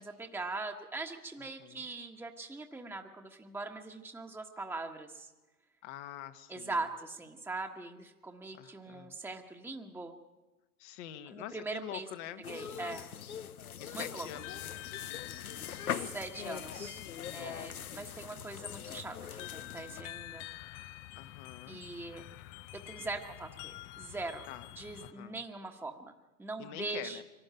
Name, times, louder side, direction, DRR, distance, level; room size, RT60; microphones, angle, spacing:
voice 1, 0.0-5.3 6.5-10.1 11.3-12.1 12.5-13.1 13.9-14.3 15.9-17.0 17.3-20.5 21.7-22.2 22.7-24.5 24.8-26.1 26.4-27.2, right 3 dB, 5° right, 3 dB, 1.4 m, -41 dB
voice 2, 5.8-6.7 8.5-9.2 10.8-12.4 13.8-15.7 17.3-18.0 21.1-21.8 22.1-22.3 24.5-24.7 25.0-25.4 26.6-27.2, left 12 dB, 55° left, 10 dB, 1.5 m, -46 dB
sound 1, 12.4-20.0, left 9 dB, 85° left, 0.9 m, -42 dB
sound 2, 14.3-25.1, left 16 dB, 35° left, 0.7 m, -48 dB
24.5 x 13.0 x 9.2 m, 1.1 s
figure-of-eight pair, 90°, 43 cm